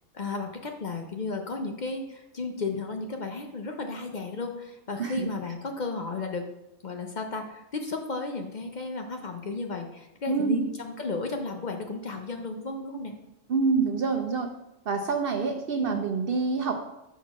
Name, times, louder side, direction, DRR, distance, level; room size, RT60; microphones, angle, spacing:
voice 1, 0.1-6.5 6.8-13.1 15.8-16.0, left 3 dB, 50° left, 4 dB, 0.6 m, -34 dB
voice 2, 10.3-10.7 13.5-14.5 14.9-16.8, right 4 dB, 60° right, 5 dB, 0.6 m, -26 dB
6.0 x 4.4 x 5.7 m, 0.89 s
omnidirectional pair, 1.4 m